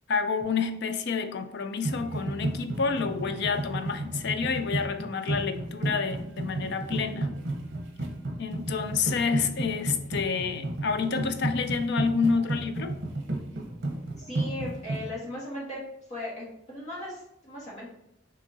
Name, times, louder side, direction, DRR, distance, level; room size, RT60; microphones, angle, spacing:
voice 1, 0.1-7.3 8.4-13.0, left 5 dB, 55° left, 8 dB, 0.4 m, -29 dB
sound 1, 1.8-15.1, right 2 dB, 60° right, 0.8 m, -32 dB
voice 2, 14.2-15.8 16.1-17.9, left 1 dB, 35° left, -6 dB, 1.5 m, -37 dB
6.1 x 2.8 x 2.7 m, 0.82 s
head